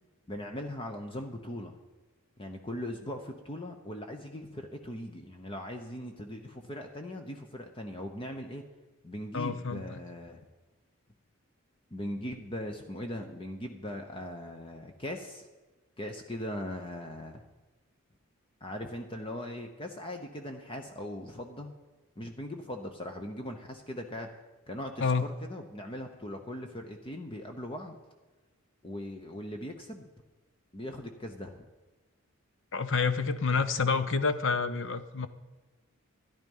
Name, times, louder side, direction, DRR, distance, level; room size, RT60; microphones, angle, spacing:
voice 1, 0.3-1.8 2.4-8.6 9.0-10.4 11.9-15.5 16.0-17.4 18.6-21.8 22.2-24.3 24.7-28.0 28.8-30.1 30.7-31.6, left 1 dB, 25° left, 4 dB, 0.9 m, -40 dB
voice 2, 9.3-10.0 25.0-25.3 32.7-35.3, left 4 dB, 55° left, 12 dB, 0.8 m, -28 dB
13.5 x 10.5 x 5.5 m, 1.2 s
head